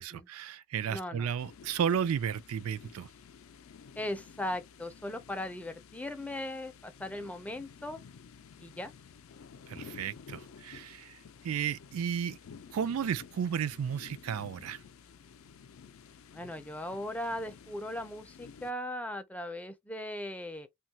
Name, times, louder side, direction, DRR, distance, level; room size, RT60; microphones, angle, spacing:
voice 1, 0.0-3.1 9.7-12.4 12.7-14.8, right 8 dB, 80° right, 0.4 m, -33 dB
voice 2, 0.9-1.3 4.0-8.0 8.6-8.9 16.3-20.7, left 1 dB, 5° left, 0.4 m, -38 dB
sound 1, 1.4-18.7, left 6 dB, 70° left, 0.4 m, -52 dB
3.0 x 2.3 x 2.7 m
head